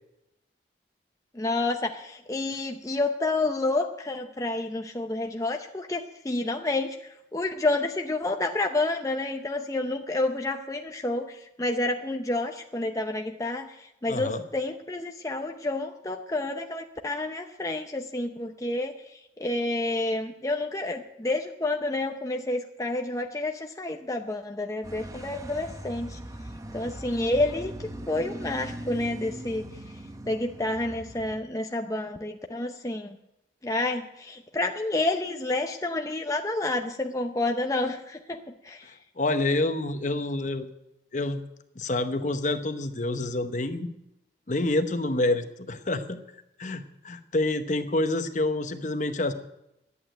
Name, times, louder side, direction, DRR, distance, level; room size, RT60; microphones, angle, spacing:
voice 1, 1.3-26.2 26.7-29.7 30.3-33.2 33.6-38.9, left 2 dB, 20° left, 4 dB, 0.6 m, -29 dB
voice 2, 14.1-14.4 39.2-40.7 41.1-41.4 41.8-43.9 44.5-46.2 46.6-49.3, left 2 dB, 45° left, 9 dB, 0.9 m, -27 dB
sound 1, 24.8-31.4, right 1 dB, 20° right, 0.7 m, -40 dB
11.5 x 8.5 x 9.1 m, 0.87 s
head